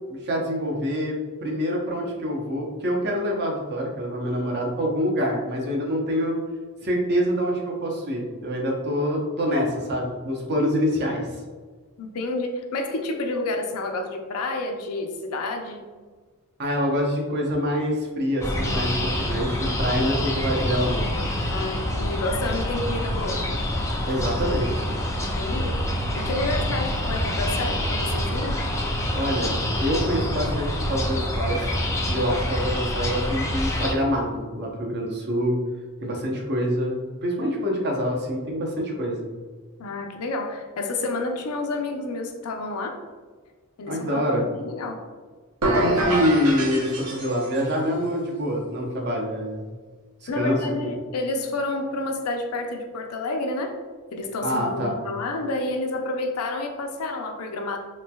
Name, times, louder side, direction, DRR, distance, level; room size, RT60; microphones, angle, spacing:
voice 1, 0.1-1.1 1.4-6.4 6.8-11.2 16.6-21.1 24.0-24.9 29.1-31.6 32.1-35.6 36.0-39.3 43.9-44.5 45.8-49.7 50.3-50.9 54.4-55.0, equal, 50° right, -1 dB, 0.7 m, -26 dB
voice 2, 12.0-15.9 21.5-23.5 25.4-25.8 26.1-28.6 39.8-43.0 43.8-45.0 50.3-53.8 54.1-57.8, left 2 dB, 75° left, 4 dB, 0.5 m, -29 dB
sound 1, 18.4-33.9, left 1 dB, 15° left, 0.3 m, -26 dB
sound 2, 45.6-47.7, right 1 dB, 85° right, 0.8 m, -25 dB
3.9 x 3.1 x 2.2 m, 1.4 s
head